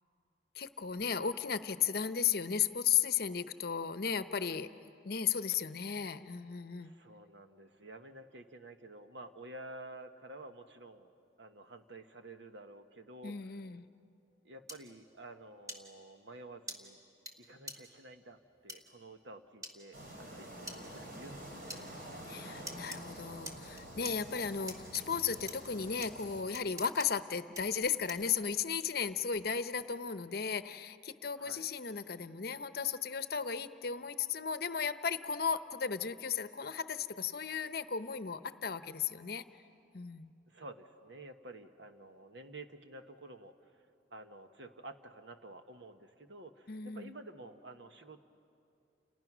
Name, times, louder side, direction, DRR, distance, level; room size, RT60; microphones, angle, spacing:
voice 1, 0.6-4.7 5.0-6.9 13.2-13.9 22.3-39.4 39.9-40.3 46.7-47.1, left 7 dB, 55° left, 12 dB, 0.8 m, -35 dB
voice 2, 6.8-13.6 14.4-17.0 17.4-22.0 31.3-31.7 40.5-43.7 44.1-48.2, right 2 dB, 70° right, 7 dB, 1.3 m, -51 dB
sound 1, 14.7-14.8 15.7-15.8 16.7-16.8 17.3-17.4 17.7-17.8 18.7-18.8 19.6-19.7 20.7-20.8 21.7-21.8 22.7-23.0 23.4-24.1 24.7-25.0 25.5-25.6 26.0-26.1 26.5-27.1 27.5-27.6 28.1-28.3, equal, 20° right, 1.9 m, -43 dB
Medium Wind in treets, 19.9-26.4, right 1 dB, 50° right, 3.5 m, -48 dB
30.0 x 29.5 x 6.1 m, 2.6 s
head